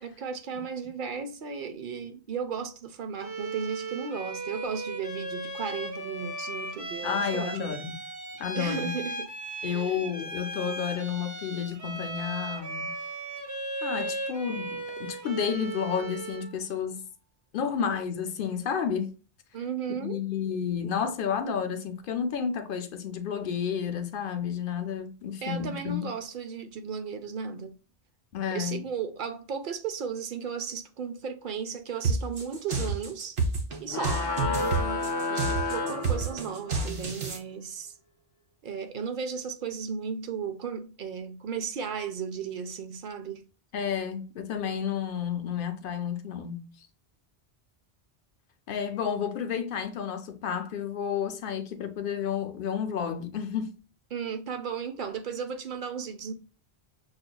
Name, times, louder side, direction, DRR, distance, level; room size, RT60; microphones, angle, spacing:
voice 1, 0.0-7.8 8.5-9.3 9.7-10.1 19.5-20.2 25.4-27.7 28.5-33.4 33.8-37.9 38.6-43.4 54.1-56.3, right 6 dB, 60° right, 0.7 m, -35 dB
Bowed string instrument, 3.2-16.6, right 2 dB, 20° right, 0.8 m, -37 dB
voice 2, 7.0-8.0 8.4-8.9 9.6-12.9 13.8-17.0 17.5-19.1 19.9-26.1 28.3-28.8 43.7-46.7 48.7-53.7, left 7 dB, 65° left, 0.7 m, -31 dB
sound 1, 32.0-37.4, right 3 dB, 75° right, 1.2 m, -29 dB
sound 2, 33.9-36.8, left 3 dB, 35° left, 0.4 m, -31 dB
6.3 x 2.4 x 2.2 m
omnidirectional pair, 1.0 m